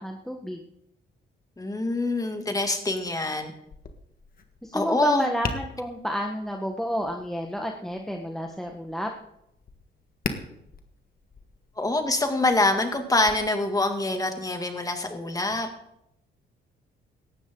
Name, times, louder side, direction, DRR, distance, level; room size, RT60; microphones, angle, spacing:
voice 1, 0.0-0.6 4.6-9.1, equal, ahead, 3 dB, 1.2 m, -30 dB
voice 2, 1.6-3.5 4.7-5.3 11.8-15.7, left 2 dB, 15° left, 5 dB, 2.3 m, -25 dB
Tap, 3.6-13.3, left 5 dB, 45° left, 1.6 m, -41 dB
18.0 x 13.5 x 3.8 m, 0.81 s
cardioid pair, 90°, 20 cm